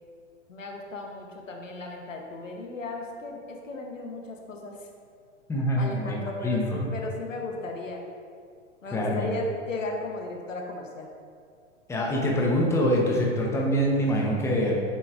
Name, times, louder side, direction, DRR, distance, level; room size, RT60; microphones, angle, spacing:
voice 1, 0.5-4.9 5.8-8.1 8.8-11.1, left 2 dB, 85° left, 1 dB, 1.0 m, -35 dB
voice 2, 5.5-6.2 6.4-6.9 8.9-9.3 11.9-14.7, equal, 5° left, -2 dB, 0.8 m, -24 dB
7.5 x 5.5 x 2.5 m, 2.2 s
hypercardioid pair, 110°, 37 cm